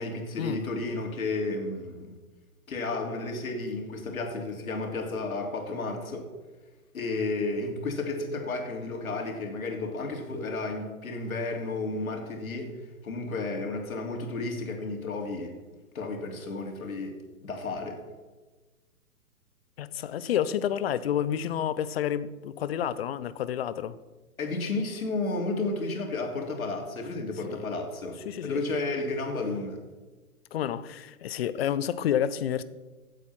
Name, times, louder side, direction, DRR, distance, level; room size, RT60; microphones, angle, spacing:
voice 1, 0.0-2.1 2.7-6.2 6.9-12.7 13.0-15.6 15.9-18.0 24.4-29.8, left 3 dB, 70° left, 3.1 m, -32 dB
voice 2, 19.8-24.0 27.5-27.6 28.3-28.6 30.5-32.6, left 10 dB, 45° left, 0.8 m, -29 dB
16.5 x 8.2 x 5.9 m
hypercardioid pair, 135°, 44 cm